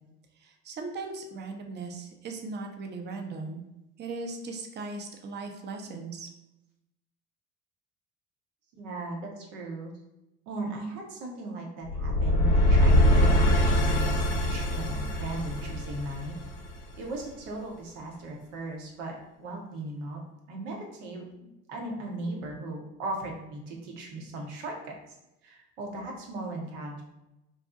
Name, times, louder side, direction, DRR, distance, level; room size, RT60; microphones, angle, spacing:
voice 1, 0.4-3.6 4.0-6.3, right 3 dB, 30° right, 3 dB, 0.5 m, -38 dB
voice 2, 8.7-9.9 10.5-16.4 17.0-20.2 20.5-24.9 25.4-27.0, right 2 dB, 80° right, 0 dB, 0.8 m, -37 dB
sound 1, 11.9-16.9, equal, 85° left, 0.7 m, -23 dB
2.6 x 2.0 x 3.6 m, 0.92 s
hypercardioid pair, 70°, 36 cm